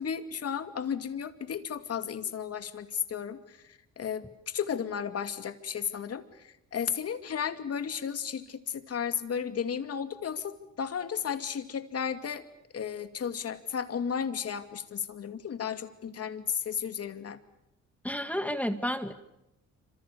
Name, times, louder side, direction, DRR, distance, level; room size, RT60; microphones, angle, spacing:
voice 1, 0.0-12.4 12.7-17.4, left 7 dB, 55° left, 9 dB, 2.5 m, -34 dB
voice 2, 18.0-19.1, equal, 5° left, 9 dB, 2.0 m, -31 dB
27.5 x 26.5 x 6.9 m, 0.90 s
cardioid pair, 90°, 30 cm